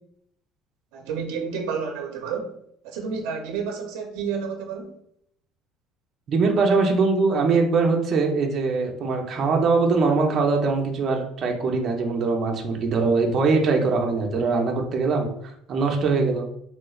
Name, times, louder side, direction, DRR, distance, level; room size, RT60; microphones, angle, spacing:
voice 1, 0.9-2.5 2.8-4.9, right 6 dB, 85° right, 3 dB, 0.5 m, -30 dB
voice 2, 6.3-16.5, right 4 dB, 35° right, 2 dB, 0.5 m, -22 dB
3.0 x 3.0 x 2.3 m, 0.70 s
cardioid pair, 160°, 0 cm